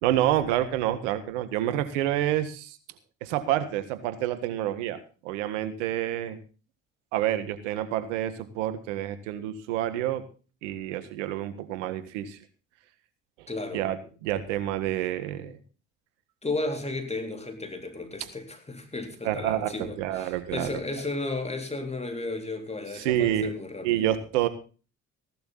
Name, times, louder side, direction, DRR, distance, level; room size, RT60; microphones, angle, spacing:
voice 1, 0.0-2.8 3.2-6.4 7.1-10.2 10.6-12.4 13.4-13.5 13.7-15.6 19.2-20.8 22.9-23.5 23.8-24.5, right 12 dB, 85° right, 1.7 m, -28 dB
voice 2, 13.5-13.9 16.4-24.1, left 2 dB, 20° left, 3.7 m, -34 dB
16.5 x 12.0 x 4.1 m
hypercardioid pair, 60°, 35 cm